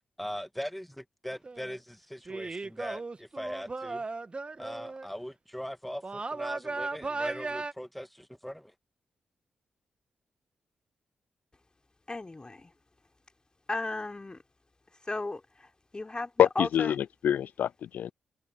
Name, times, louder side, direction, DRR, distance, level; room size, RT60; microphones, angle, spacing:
voice 1, 0.2-1.8 2.1-4.0 4.6-8.7, equal, 5° left, 2.1 m, -40 dB
sound 1, 1.3-1.8 2.3-5.1 6.0-7.7, right 3 dB, 35° right, 1.3 m, -36 dB
voice 2, 12.1-12.7 13.7-14.4 15.0-16.9, left 2 dB, 30° left, 3.4 m, -35 dB
voice 3, 16.4-18.1, left 10 dB, 75° left, 0.4 m, -26 dB
supercardioid pair, 45°, 3 cm